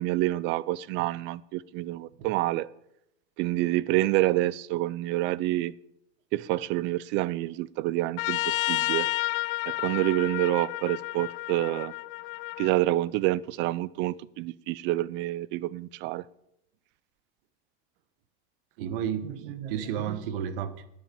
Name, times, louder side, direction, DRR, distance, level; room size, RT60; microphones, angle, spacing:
voice 1, 0.0-2.7 3.4-5.7 6.3-9.1 9.7-11.9 12.6-16.2, right 16 dB, 40° right, 21 dB, 0.4 m, -27 dB
Trumpet, 8.2-12.7, left 20 dB, 70° left, 0.5 m, -31 dB
voice 2, 18.8-20.9, right 9 dB, 65° right, 13 dB, 1.2 m, -32 dB
10.0 x 8.6 x 6.9 m, 0.80 s
supercardioid pair, 140°, 29 cm